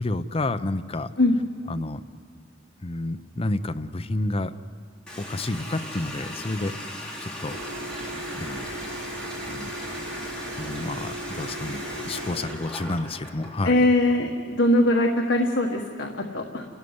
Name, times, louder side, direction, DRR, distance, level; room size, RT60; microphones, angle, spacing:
voice 1, 0.0-1.1 1.7-2.0 2.8-4.5 5.2-6.8 7.2-7.6 8.3-8.7 9.5-9.7 10.6-13.9, left 2 dB, 30° left, 10 dB, 0.7 m, -30 dB
Water tap faucet, 5.1-13.6, left 1 dB, 5° left, 4.0 m, -37 dB
sound 1, 7.5-12.6, right 2 dB, 90° right, 1.7 m, -37 dB
voice 2, 13.6-16.7, left 1 dB, 70° left, 1 dB, 1.5 m, -22 dB
29.0 x 14.0 x 9.6 m, 2.1 s
head